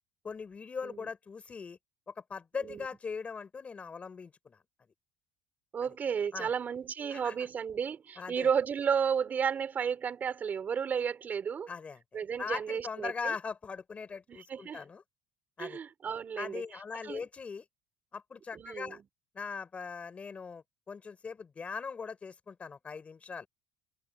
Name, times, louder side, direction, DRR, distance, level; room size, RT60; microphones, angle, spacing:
voice 1, 0.2-1.8 2.1-4.6 6.3-6.5 7.1-7.3 8.2-8.5 11.7-12.0 12.4-15.0 15.6-15.8 16.4-17.6 18.1-19.0 19.3-23.5, left 5 dB, 20° left, 4.8 m, -40 dB
voice 2, 5.7-11.7 12.1-13.3 14.3-14.8 15.6-16.6 17.0-17.2 18.5-19.0, right 7 dB, 30° right, 5.8 m, -33 dB
cardioid pair, 140°, 6 cm